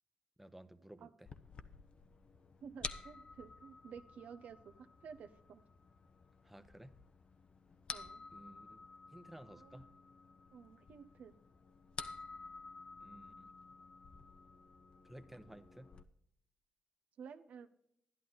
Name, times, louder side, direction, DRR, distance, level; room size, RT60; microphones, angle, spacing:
voice 1, 0.4-1.3 6.4-6.9 8.3-8.8 9.1-9.9 13.0-13.5 15.0-16.0, right 1 dB, 5° right, 11 dB, 0.9 m, -55 dB
sound 1, 1.3-16.0, left 4 dB, 45° left, 0.8 m, -52 dB
voice 2, 2.6-4.7 5.0-5.6 7.9-8.2 9.5-9.8 10.5-11.4 17.2-17.7, right 6 dB, 70° right, 11 dB, 0.9 m, -52 dB
11.0 x 11.0 x 3.9 m, 0.71 s
cardioid pair, 85°, 3 cm